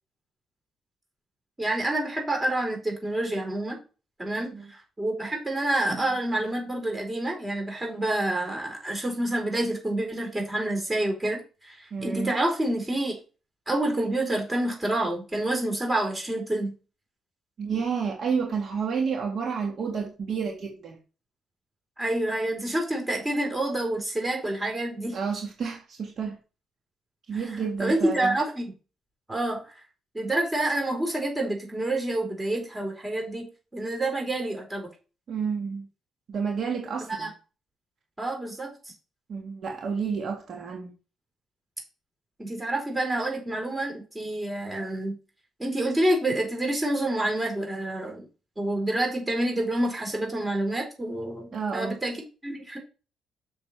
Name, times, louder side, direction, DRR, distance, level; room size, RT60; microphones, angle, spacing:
voice 1, 1.6-3.8 4.2-13.1 13.7-16.7 22.0-25.2 27.3-28.7 29.3-29.8 30.1-33.5 33.7-34.9 37.1-37.3 38.2-38.7 42.4-45.1 45.6-48.3 48.6-52.2 52.4-52.8, right 1 dB, 15° right, 4.4 m, -28 dB
voice 2, 11.9-12.3 17.6-21.0 25.1-26.4 27.3-28.4 35.3-35.9 36.3-37.3 39.3-40.9 51.5-52.0, right 6 dB, 55° right, 1.7 m, -30 dB
7.1 x 6.5 x 4.4 m
cardioid pair, 90°, 0 cm